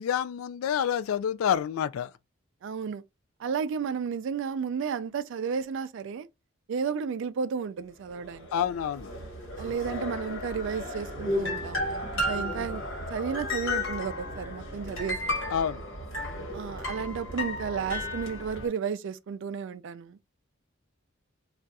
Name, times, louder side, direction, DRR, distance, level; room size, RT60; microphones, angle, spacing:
voice 1, 0.0-2.1 8.5-9.1 15.5-15.8, left 8 dB, 80° left, 0.3 m, -28 dB
voice 2, 2.6-3.0 3.4-6.3 6.7-8.5 9.6-12.8 13.1-15.4 16.5-20.2, right 6 dB, 60° right, 0.3 m, -33 dB
sound 1, 8.2-18.7, left 1 dB, 65° left, 1.3 m, -34 dB
2.4 x 2.3 x 4.0 m
head